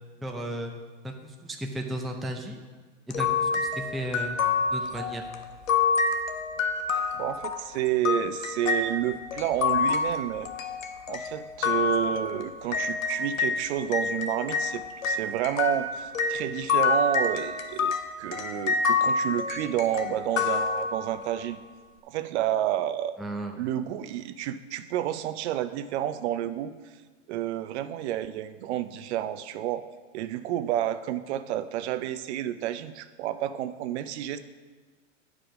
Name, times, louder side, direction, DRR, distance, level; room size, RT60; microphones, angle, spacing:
voice 1, 0.2-0.7 1.0-2.6 3.1-4.4 4.7-5.2 23.2-23.6, right 1 dB, ahead, 2 dB, 0.4 m, -34 dB
sound 1, 3.1-13.6 13.9-21.3, left 5 dB, 85° left, 0.9 m, -28 dB
voice 2, 7.1-10.5 11.1-21.6 22.0-23.1 23.6-26.7 27.3-29.8 30.1-34.4, right 12 dB, 60° right, 12 dB, 0.6 m, -30 dB
10.0 x 4.8 x 5.1 m, 1.4 s
hypercardioid pair, 110°, 39 cm